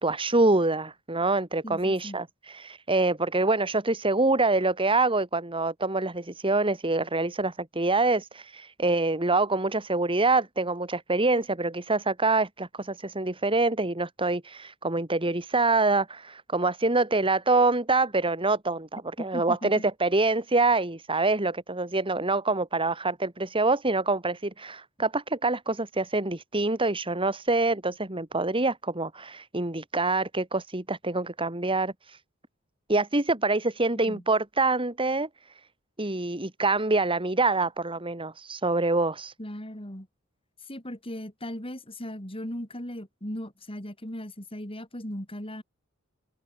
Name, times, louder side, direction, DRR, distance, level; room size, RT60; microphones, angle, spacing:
voice 1, 0.0-32.2 32.9-35.3 36.0-39.3, right 3 dB, 25° right, 3.2 m, -25 dB
voice 2, 1.6-2.2 19.2-19.8 34.1-34.2 39.4-40.1 40.7-45.6, equal, 25° left, 7.1 m, -37 dB
head